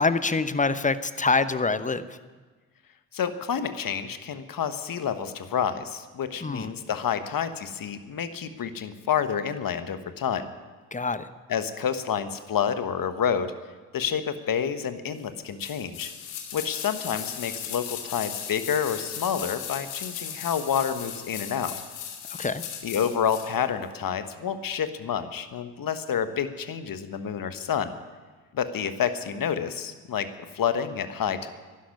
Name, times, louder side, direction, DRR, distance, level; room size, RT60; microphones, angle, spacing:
voice 1, 0.0-2.1 6.4-6.7 10.9-11.3 22.3-22.6, left 4 dB, 20° left, 13 dB, 0.9 m, -25 dB
voice 2, 3.1-10.5 11.5-13.5 13.9-16.1 16.5-21.7 22.8-27.9 28.5-30.3 30.5-31.5, left 8 dB, 50° left, 10 dB, 1.4 m, -29 dB
sound 1, 15.6-23.5 23.8-23.9, left 9 dB, 80° left, 1.7 m, -37 dB
11.5 x 11.5 x 9.8 m, 1.4 s
hypercardioid pair, 40°, 42 cm